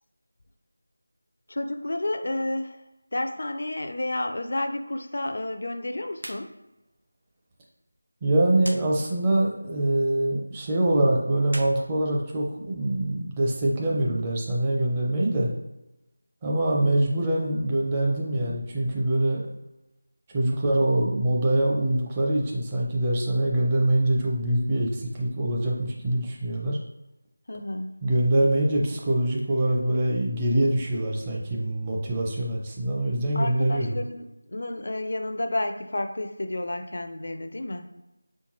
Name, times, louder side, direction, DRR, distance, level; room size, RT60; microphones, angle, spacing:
voice 1, 1.5-2.8 3.1-6.5 27.5-28.0 33.3-37.9, left 1 dB, 60° left, 7 dB, 0.4 m, -31 dB
sound 1, 6.1-6.4 6.8-6.9 8.6-8.8 11.4-12.7, right 1 dB, 75° right, 0.6 m, -40 dB
voice 2, 8.2-15.5 16.4-19.4 20.3-26.8 28.0-34.0, right 1 dB, 15° right, -3 dB, 0.5 m, -24 dB
4.4 x 3.4 x 3.0 m, 0.95 s
figure-of-eight pair, 170°, 0 cm